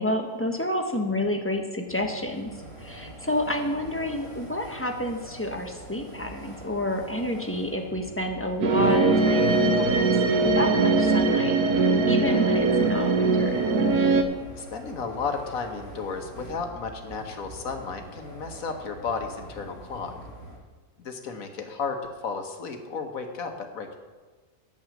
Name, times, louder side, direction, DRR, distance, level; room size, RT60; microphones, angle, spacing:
voice 1, 0.0-2.5 2.8-10.2 10.4-13.6, left 1 dB, 10° left, 3 dB, 0.9 m, -29 dB
sound 1, 1.9-20.6, right 1 dB, 55° right, 4.4 m, -44 dB
Ambient Guitar Sounds, 8.6-14.2, right 3 dB, 80° right, 1.5 m, -21 dB
voice 2, 14.6-20.1 21.0-24.0, left 5 dB, 65° left, 5 dB, 1.6 m, -33 dB
9.0 x 8.6 x 7.2 m, 1.3 s
omnidirectional pair, 1.6 m